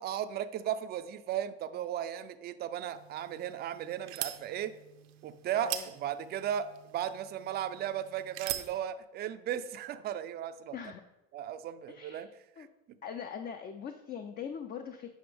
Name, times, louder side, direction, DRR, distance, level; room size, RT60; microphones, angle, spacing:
voice 1, 0.0-4.7 5.2-10.8 11.3-12.3 12.6-12.7, right 10 dB, 35° right, 10 dB, 0.4 m, -36 dB
sound 1, 2.9-8.8, right 13 dB, 85° right, 0.7 m, -43 dB
voice 2, 5.5-5.9 10.7-11.0 11.9-12.3 12.6-12.7 13.0-15.1, left 7 dB, 30° left, 7 dB, 0.4 m, -41 dB
7.8 x 5.1 x 3.4 m, 0.97 s
supercardioid pair, 110°, 29 cm